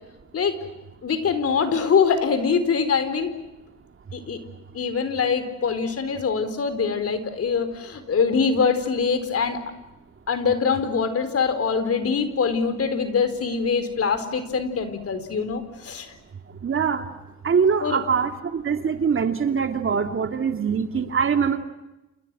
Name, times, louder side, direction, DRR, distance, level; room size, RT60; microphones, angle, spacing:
voice 1, 1.0-3.3 4.1-4.4 4.7-9.6 10.3-16.2 17.8-18.1, left 5 dB, 50° left, 11 dB, 4.4 m, -23 dB
voice 2, 16.6-17.1 17.4-21.6, right 6 dB, 45° right, 7 dB, 2.6 m, -23 dB
29.5 x 29.0 x 6.3 m, 0.99 s
cardioid pair, 90°, 30 cm